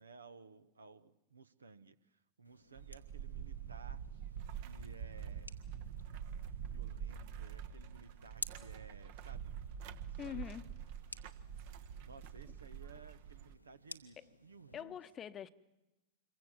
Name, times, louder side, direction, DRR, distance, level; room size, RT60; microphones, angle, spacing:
voice 1, 0.0-4.0 4.6-5.5 6.7-9.5 10.1-10.9 12.0-15.0, right 4 dB, 75° right, 1.1 m, -57 dB
sound 1, 2.4-14.8, left 1 dB, 90° left, 1.4 m, -54 dB
sound 2, 2.8-13.6, right 8 dB, 50° right, 1.1 m, -46 dB
voice 2, 10.2-10.7 12.4-12.5 14.2-14.3 14.7-15.5, left 9 dB, 25° left, 1.0 m, -45 dB
26.5 x 23.0 x 7.5 m
figure-of-eight pair, 90°, 0 cm